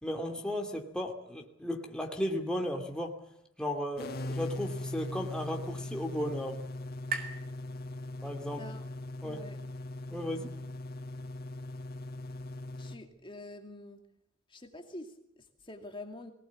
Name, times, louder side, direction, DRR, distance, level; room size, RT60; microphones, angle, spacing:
voice 1, 0.0-3.2 3.6-6.6 8.2-8.7 9.2-9.4 10.1-10.5, equal, 5° left, 1 dB, 2.4 m, -35 dB
sound 1, 4.0-13.0, left 2 dB, 45° left, 1.4 m, -40 dB
sound 2, 4.7-8.5, right 5 dB, 45° right, 4.4 m, -44 dB
voice 2, 8.6-8.9 9.2-9.6 12.8-14.1 14.5-16.3, left 2 dB, 25° left, 4 dB, 2.4 m, -47 dB
23.5 x 19.0 x 8.5 m, 0.78 s
head